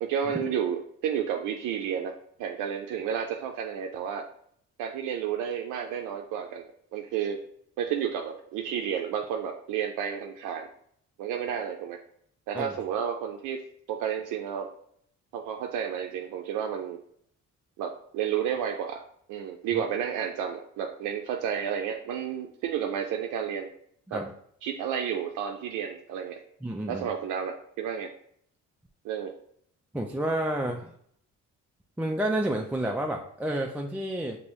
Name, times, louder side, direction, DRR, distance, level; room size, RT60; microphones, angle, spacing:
voice 1, 0.0-4.3 4.8-6.6 6.9-7.4 7.8-10.7 11.2-12.0 12.5-13.6 13.9-14.7 15.3-17.0 17.8-19.0 19.3-23.7 24.1-24.2 24.6-26.4 26.9-28.1 29.0-29.3, right 8 dB, 90° right, 3 dB, 0.5 m, -31 dB
voice 2, 26.6-27.1 29.9-30.9 32.0-34.4, right 1 dB, 5° right, 1 dB, 0.4 m, -30 dB
5.3 x 2.8 x 3.0 m, 0.66 s
cardioid pair, 90°, 30 cm